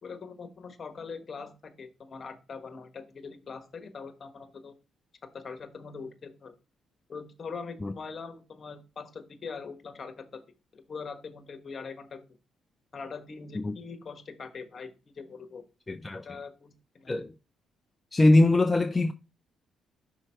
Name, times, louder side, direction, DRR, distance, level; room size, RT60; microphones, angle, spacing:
voice 1, 0.0-4.7 5.3-6.5 7.1-10.4 10.7-12.3 12.9-14.9 15.2-15.6 16.2-17.1, left 5 dB, 45° left, 1.4 m, -42 dB
voice 2, 15.9-16.3 17.1-17.3 18.1-19.1, left 2 dB, 20° left, 0.5 m, -22 dB
5.8 x 4.5 x 4.5 m
cardioid pair, 90°, 0 cm